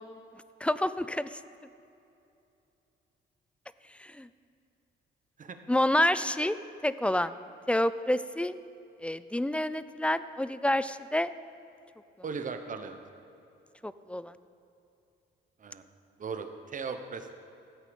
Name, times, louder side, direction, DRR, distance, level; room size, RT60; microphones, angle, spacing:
voice 1, 0.6-1.4 4.0-4.3 5.7-6.6 6.8-7.3 7.7-8.5 9.0-11.3 13.8-14.3, left 1 dB, 5° left, 15 dB, 0.3 m, -28 dB
voice 2, 12.2-13.0 15.6-15.8 16.2-17.4, right 5 dB, 40° right, 7 dB, 1.0 m, -38 dB
13.5 x 8.2 x 5.3 m, 2.7 s
cardioid pair, 90°, 20 cm